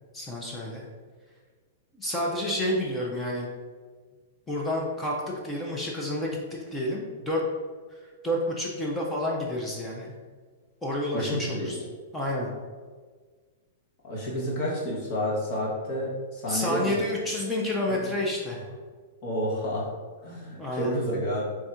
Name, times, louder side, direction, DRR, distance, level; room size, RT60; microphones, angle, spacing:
voice 1, 0.1-0.9 1.9-3.5 4.5-7.4 7.9-10.1 10.8-11.8 12.1-12.5 16.5-18.6 20.6-21.0, left 1 dB, 10° left, -3 dB, 0.5 m, -29 dB
voice 2, 11.1-11.8 14.0-17.0 19.2-19.9 20.2-21.6, equal, 40° left, -5 dB, 1.0 m, -30 dB
3.5 x 2.4 x 4.2 m, 1.5 s
hypercardioid pair, 155°, 0 cm